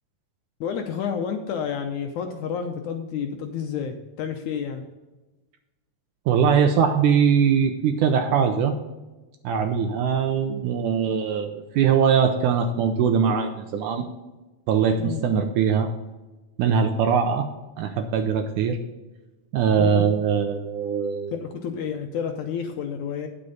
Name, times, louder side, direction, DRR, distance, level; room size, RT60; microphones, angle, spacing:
voice 1, 0.6-4.8 15.0-15.2 19.8-20.1 21.3-23.3, left 7 dB, 75° left, 5 dB, 1.9 m, -30 dB
voice 2, 6.3-8.8 9.4-14.1 14.7-15.9 16.6-17.5 17.8-18.8 19.5-21.3, right 7 dB, 75° right, 7 dB, 1.9 m, -21 dB
9.8 x 7.9 x 4.0 m, 1.1 s
omnidirectional pair, 4.0 m